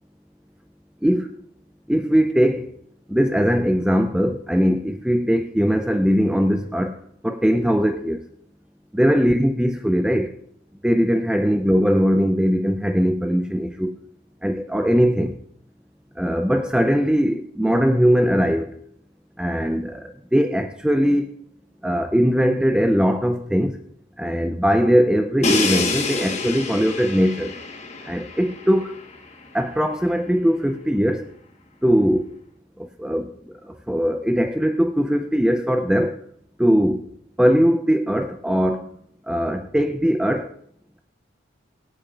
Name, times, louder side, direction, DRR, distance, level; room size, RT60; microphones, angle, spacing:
voice 1, 1.0-1.3 1.9-2.7 3.1-8.2 8.9-10.3 10.8-13.9 14.4-15.4 16.2-18.7 19.4-21.3 21.8-23.8 24.2-27.5 28.1-29.0 29.5-31.3 31.8-32.3 33.0-33.3 33.7-36.2 36.6-37.0 37.4-38.9 39.3-40.5, equal, 5° right, 0.4 m, -20 dB
Crash cymbal, 25.4-29.2, left 4 dB, 35° left, 1.3 m, -27 dB
23.5 x 8.3 x 2.4 m
head